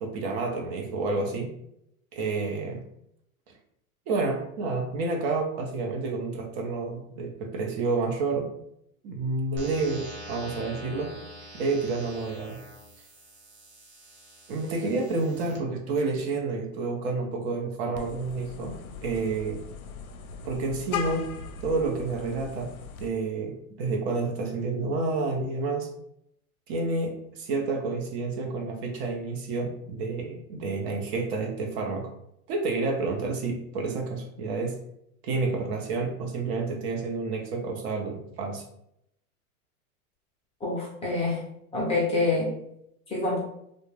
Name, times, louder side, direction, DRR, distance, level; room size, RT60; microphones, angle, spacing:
voice 1, 0.0-1.5 2.1-2.8 4.1-8.5 9.0-11.1 11.5-12.6 14.5-19.6 20.4-21.3 21.6-22.7 23.0-25.9 26.7-32.1 32.5-34.8 35.2-38.6, right 3 dB, 45° right, 2 dB, 0.6 m, -29 dB
sound 1, 9.6-15.6, equal, 25° right, 0.9 m, -45 dB
Vehicle horn car horn honking, 17.9-23.1, left 6 dB, 75° left, 0.5 m, -38 dB
voice 2, 40.6-41.4 41.7-42.5 43.1-43.4, left 3 dB, 15° left, -4 dB, 0.6 m, -26 dB
2.3 x 2.0 x 3.1 m, 0.75 s
hypercardioid pair, 125°, 43 cm